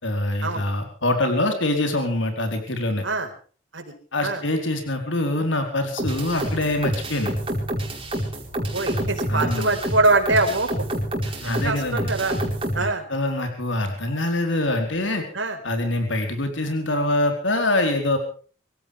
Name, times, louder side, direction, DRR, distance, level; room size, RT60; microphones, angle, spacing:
voice 1, 0.0-3.0 4.1-7.3 9.3-9.8 11.4-12.1 12.8-15.3 15.6-18.2, left 1 dB, 75° left, 5 dB, 4.2 m, -24 dB
sound 1, 6.0-12.8, right 1 dB, 30° right, 5.0 m, -28 dB
voice 2, 8.5-10.9 11.4-12.4 12.7-13.1 15.3-15.6, right 2 dB, 80° right, 5 dB, 4.6 m, -23 dB
25.5 x 16.0 x 3.5 m, 0.40 s
head